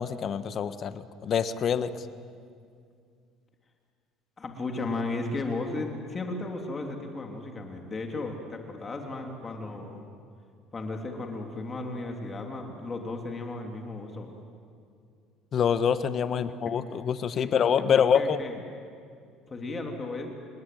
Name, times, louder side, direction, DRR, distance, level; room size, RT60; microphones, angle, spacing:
voice 1, 0.0-2.1 15.5-18.4, left 7 dB, 45° left, 12 dB, 1.3 m, -26 dB
voice 2, 4.4-10.0 10.7-14.3 17.4-17.5 17.9-18.6 19.5-20.3, left 2 dB, 25° left, 2 dB, 3.1 m, -35 dB
29.0 x 19.0 x 9.4 m, 2.3 s
cardioid pair, 120°, 0 cm